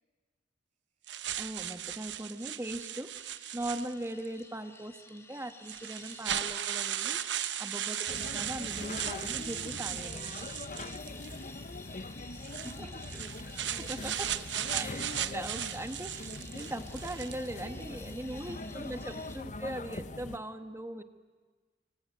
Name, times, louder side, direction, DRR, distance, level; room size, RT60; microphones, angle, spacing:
sound 1, 1.1-4.3 5.1-5.2 5.6-11.4 12.4-17.5, right 11 dB, 75° right, 0.9 m, -37 dB
voice 1, 1.4-3.1 3.5-10.5 12.3-12.4 13.9-14.1 14.7-16.1 16.5-21.0, right 1 dB, 15° right, 8 dB, 1.3 m, -40 dB
sound 2, 1.9-19.4, left 3 dB, 15° left, 1.5 m, -53 dB
sound 3, 8.1-20.4, left 2 dB, 45° left, 1.0 m, -42 dB
voice 2, 12.0-12.4 12.7-14.1 16.4-16.7 17.6-19.9, right 1 dB, 35° right, -4 dB, 6.6 m, -55 dB
26.0 x 24.5 x 9.2 m, 1.4 s
head